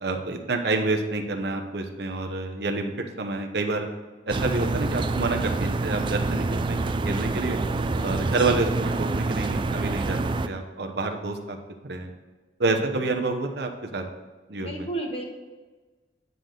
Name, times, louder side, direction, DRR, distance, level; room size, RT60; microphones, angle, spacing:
voice 1, 0.0-3.9 4.3-7.6 8.0-10.2 10.4-11.6 11.8-12.1 12.6-14.0 14.5-14.9, right 3 dB, 65° right, 4 dB, 1.0 m, -28 dB
sound 1, 4.3-10.5, right 3 dB, 30° right, 0.3 m, -27 dB
voice 2, 14.6-15.2, right 2 dB, 35° left, 1 dB, 1.3 m, -34 dB
9.6 x 3.9 x 6.5 m, 1.3 s
head